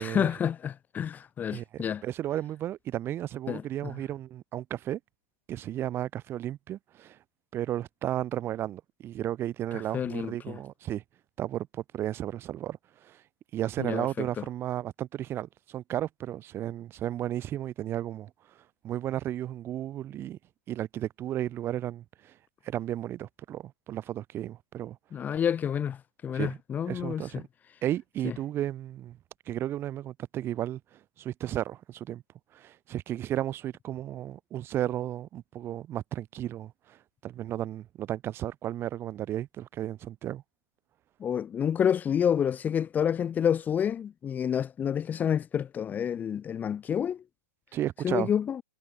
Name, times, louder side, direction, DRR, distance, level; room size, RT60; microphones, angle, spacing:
voice 1, 0.0-2.0 3.5-3.9 9.9-10.6 13.8-14.4 25.1-27.3 28.2-28.3 41.2-47.2 48.0-48.6, left 8 dB, 15° left, 0.9 m, -29 dB
voice 2, 1.5-5.0 5.5-7.2 7.5-11.0 11.4-13.2 13.5-18.3 18.8-20.4 20.7-22.3 22.6-25.0 26.3-26.6 26.9-27.5 27.8-29.2 29.5-32.2 32.5-40.4 47.7-48.3, right 12 dB, 20° right, 1.3 m, -34 dB
hypercardioid pair, 125°, 11 cm